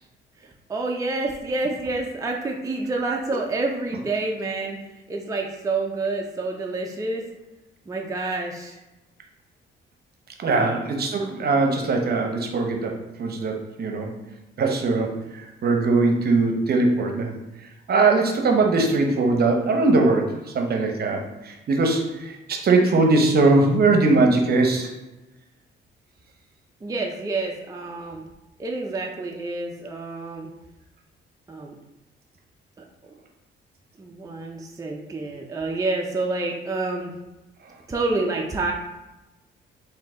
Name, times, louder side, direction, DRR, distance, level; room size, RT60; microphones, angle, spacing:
voice 1, 0.7-4.8 5.1-7.2 7.9-8.8 10.5-10.7 26.8-28.3 28.6-30.5 31.5-31.7 34.0-37.1 37.9-38.7, right 3 dB, 15° right, 0 dB, 0.5 m, -28 dB
voice 2, 10.4-12.9 13.2-14.1 14.6-17.3 17.9-24.9, right 3 dB, 50° right, 3 dB, 0.8 m, -21 dB
3.8 x 2.7 x 3.8 m, 1.0 s
cardioid pair, 90°, 20 cm